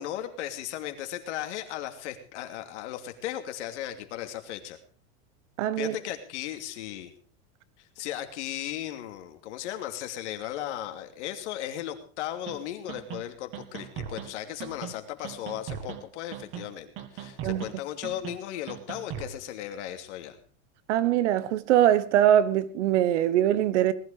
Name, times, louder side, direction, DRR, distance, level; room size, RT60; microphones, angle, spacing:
voice 1, 0.0-4.8 5.8-7.1 8.0-20.4, left 12 dB, 70° left, 2.8 m, -36 dB
voice 2, 5.6-6.0 17.4-17.6 20.9-23.9, right 11 dB, 75° right, 1.5 m, -22 dB
sound 1, 12.5-12.6 12.9-13.2 13.5-14.3 14.6-14.9 15.2-16.0 16.3-16.7 17.0-17.7 18.0-18.4 18.7-19.3, right 8 dB, 35° right, 2.1 m, -38 dB
19.5 x 12.0 x 5.0 m
supercardioid pair, 170°, 36 cm